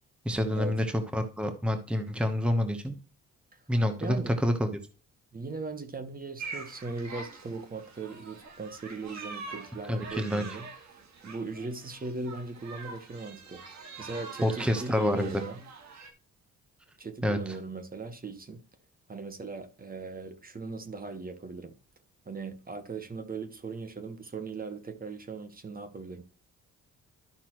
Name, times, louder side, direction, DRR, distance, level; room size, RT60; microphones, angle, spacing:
voice 1, 0.2-2.9 3.7-4.7 9.9-10.4 14.4-15.4 17.2-17.6, equal, 5° right, 1.1 m, -28 dB
voice 2, 4.0-4.3 5.3-10.7 11.2-13.6 14.0-15.6 17.0-18.6 19.1-21.7 22.3-26.2, right 3 dB, 30° right, 1.3 m, -39 dB
sound 1, 6.4-16.1, right 4 dB, 65° right, 2.1 m, -45 dB
12.0 x 5.7 x 3.1 m
cardioid pair, 90°, 30 cm